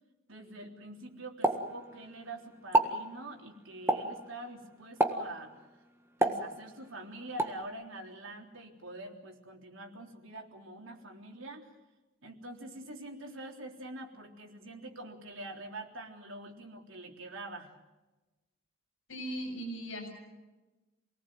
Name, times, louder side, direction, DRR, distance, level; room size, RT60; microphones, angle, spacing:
voice 1, 0.3-5.6 6.2-11.7 12.2-17.7, right 1 dB, 70° right, 1 dB, 3.6 m, -45 dB
Explosion, 1.4-2.3 2.6-3.0 3.9-4.2 5.0-5.4 6.2-6.9 7.4-7.6, right 1 dB, 10° right, 1.7 m, -29 dB
voice 2, 19.1-20.1, right 1 dB, 70° left, 3 dB, 7.5 m, -38 dB
28.0 x 19.0 x 7.7 m, 1.1 s
head